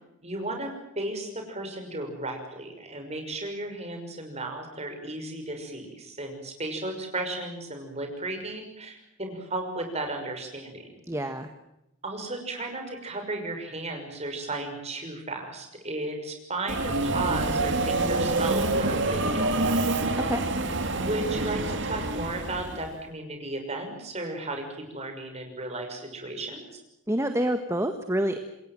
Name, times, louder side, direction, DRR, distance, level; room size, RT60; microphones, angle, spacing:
voice 1, 0.2-10.9 12.0-20.2 20.9-24.7 24.9-26.8, right 2 dB, 30° right, 4 dB, 6.0 m, -34 dB
voice 2, 11.1-11.5 20.3-20.4 27.1-28.4, right 1 dB, 15° right, 7 dB, 1.5 m, -27 dB
Subway metro underground, 16.7-22.9, right 2 dB, 55° right, 2.7 m, -27 dB
27.5 x 21.5 x 7.5 m, 0.87 s
head